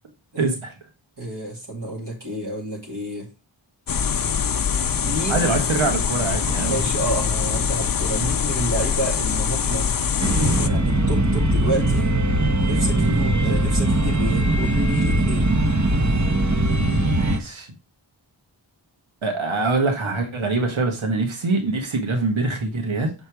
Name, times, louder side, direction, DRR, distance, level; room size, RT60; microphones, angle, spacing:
voice 1, 0.4-0.7 5.3-6.8 13.0-13.3 16.8-17.7 19.2-23.1, right 3 dB, 80° right, 1.5 m, -24 dB
voice 2, 1.2-3.3 4.7-5.5 6.7-9.9 10.2-12.1 12.6-15.5, right 1 dB, 55° right, 2.3 m, -30 dB
sound 1, 3.9-10.7, left 7 dB, 45° left, 0.6 m, -23 dB
sound 2, 10.2-17.4, right 1 dB, 35° right, 1.1 m, -20 dB
6.8 x 4.2 x 4.7 m
wide cardioid pair, 45°, 47 cm